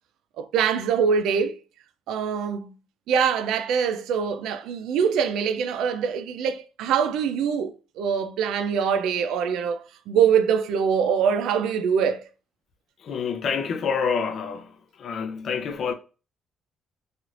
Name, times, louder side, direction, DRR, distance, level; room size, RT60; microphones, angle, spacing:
voice 1, 0.4-1.6 2.1-2.7 3.1-12.2, right 7 dB, 90° right, 0.4 m, -24 dB
voice 2, 13.0-14.7 15.0-15.9, left 6 dB, 60° left, 0.6 m, -27 dB
3.2 x 3.0 x 2.4 m
cardioid pair, 90°, 0 cm